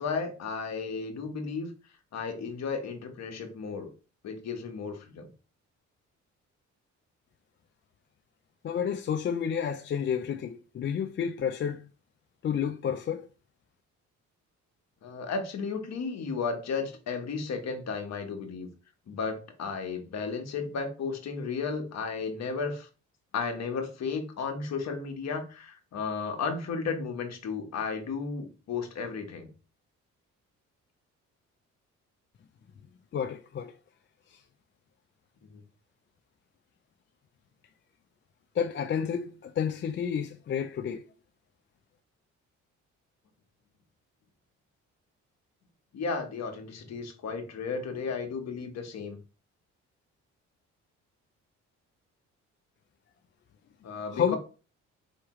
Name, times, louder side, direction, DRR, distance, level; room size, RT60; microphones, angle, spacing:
voice 1, 0.0-1.7 2.1-3.9 4.2-5.3 15.0-18.7 19.1-22.9 23.3-29.5 35.5-35.6 45.9-49.2 53.8-54.4, left 5 dB, 60° left, 1.2 m, -34 dB
voice 2, 8.6-11.9 12.4-13.3 33.1-33.7 34.3-34.4 38.5-41.0 54.1-54.3, left 7 dB, 40° left, 0.4 m, -30 dB
4.6 x 3.2 x 3.0 m
cardioid pair, 90°, 30 cm